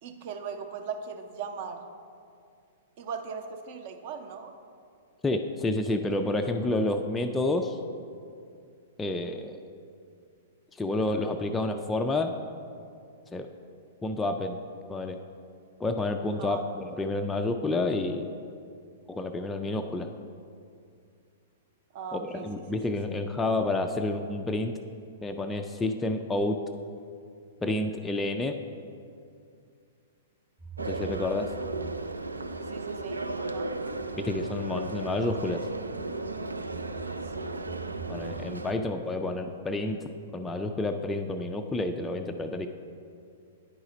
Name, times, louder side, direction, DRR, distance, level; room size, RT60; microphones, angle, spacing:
voice 1, 0.0-1.8 3.0-4.5 16.4-16.7 21.9-22.6 32.7-33.7 37.2-37.7 38.7-38.8, right 6 dB, 45° right, 6 dB, 0.6 m, -39 dB
voice 2, 5.2-7.8 9.0-9.5 10.7-12.4 13.3-13.5 14.0-14.6 14.9-15.2 15.8-18.3 19.1-20.1 22.1-24.7 25.2-26.6 27.6-28.6 30.8-31.5 34.2-35.7 38.1-42.7, left 2 dB, 10° left, 4 dB, 0.3 m, -29 dB
sound 1, 30.6-38.6, right 5 dB, 15° right, 0.9 m, -45 dB
sound 2, 30.8-38.7, right 2 dB, 80° right, 0.3 m, -35 dB
9.9 x 4.8 x 3.9 m, 2.4 s
figure-of-eight pair, 105°, 0 cm